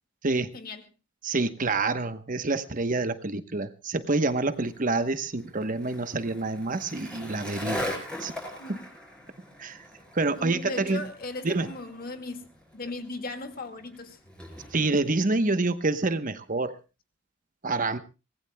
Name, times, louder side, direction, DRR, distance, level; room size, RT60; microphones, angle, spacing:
voice 1, 0.5-0.8 8.6-8.9 10.4-14.2, left 2 dB, 45° left, 7 dB, 2.0 m, -37 dB
voice 2, 1.2-7.9 8.2-8.3 8.7-8.8 9.6-9.8 10.1-11.0 11.4-11.7 14.7-16.8 17.6-18.0, right 3 dB, 40° right, 11 dB, 1.0 m, -27 dB
Skateboard, 4.5-15.1, left 1 dB, 5° left, 5.6 m, -40 dB
24.5 x 19.0 x 2.2 m, 0.31 s
head